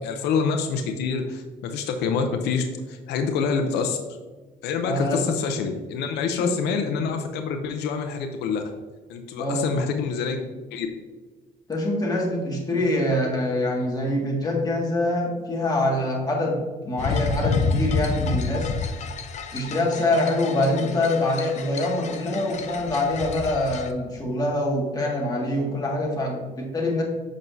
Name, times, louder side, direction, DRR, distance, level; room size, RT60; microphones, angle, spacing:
voice 1, 0.0-4.0 4.6-8.6 9.1-10.9, left 5 dB, 85° left, 5 dB, 0.7 m, -26 dB
voice 2, 4.8-5.2 6.3-6.5 9.4-9.7 11.7-16.6 16.8-18.7 19.5-27.0, left 1 dB, 25° left, -2 dB, 1.9 m, -25 dB
sound 1, 17.0-23.9, left 5 dB, 45° left, 0.6 m, -29 dB
7.5 x 6.1 x 2.7 m, 1.4 s
cardioid pair, 110°, 17 cm